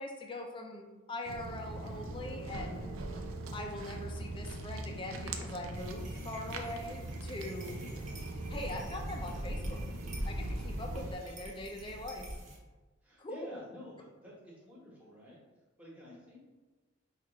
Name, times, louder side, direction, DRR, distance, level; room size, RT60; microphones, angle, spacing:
voice 1, 0.0-2.9 3.5-7.8 8.5-9.8 10.2-12.3 13.2-13.5, left 1 dB, 25° left, 2 dB, 0.4 m, -42 dB
Walk footsteps, 1.3-11.1, right 2 dB, 90° right, 0.4 m, -41 dB
Motorcycle, 4.9-10.7, equal, 70° right, 0.8 m, -62 dB
sound 1, 5.7-12.6, equal, 35° right, 0.7 m, -42 dB
voice 2, 7.7-8.2 13.0-15.4 15.8-16.4, left 1 dB, 5° right, -6 dB, 1.1 m, -51 dB
5.8 x 2.4 x 3.0 m, 1.2 s
head